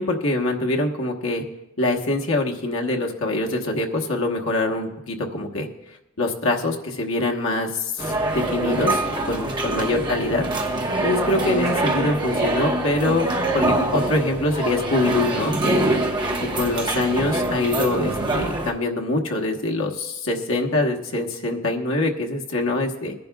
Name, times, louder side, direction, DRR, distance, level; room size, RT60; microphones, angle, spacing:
voice 1, 0.0-1.4 1.8-5.7 6.2-10.5 11.0-13.3 13.5-15.8 16.5-23.1, left 2 dB, 75° left, 1 dB, 1.2 m, -24 dB
sound 1, 8.0-18.7, right 2 dB, 20° right, 1.0 m, -24 dB
22.0 x 10.5 x 2.3 m, 0.94 s
head